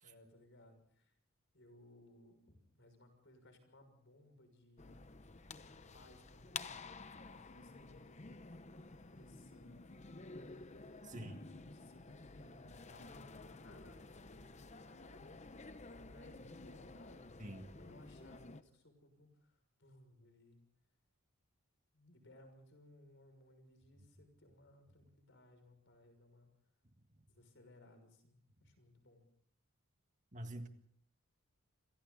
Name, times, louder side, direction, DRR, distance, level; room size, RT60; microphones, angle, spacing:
voice 1, 0.0-1.1 1.5-5.0 5.7-6.7 7.3-10.6 11.0-11.1 11.4-19.5 19.8-20.6 21.9-26.5 27.3-29.2, left 1 dB, 55° left, 7 dB, 6.4 m, -63 dB
sound 1, 4.8-18.6, left 3 dB, 30° left, 0.8 m, -52 dB
voice 2, 11.0-11.4 17.4-17.7 30.3-30.7, right 1 dB, 35° right, 6 dB, 1.8 m, -46 dB
29.0 x 26.5 x 4.1 m, 0.63 s
head